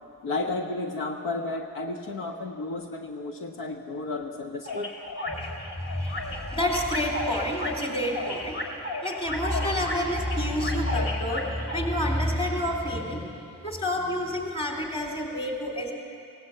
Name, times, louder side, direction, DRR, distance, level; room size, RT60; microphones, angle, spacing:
voice 1, 0.2-4.9, left 2 dB, 70° left, 4 dB, 1.4 m, -32 dB
sound 1, 4.7-11.8, left 2 dB, 35° left, 3.1 m, -34 dB
voice 2, 5.8-8.6 9.0-15.9, left 1 dB, 15° left, 1 dB, 3.7 m, -29 dB
19.5 x 18.0 x 8.0 m, 2.4 s
cardioid pair, 120°, 35 cm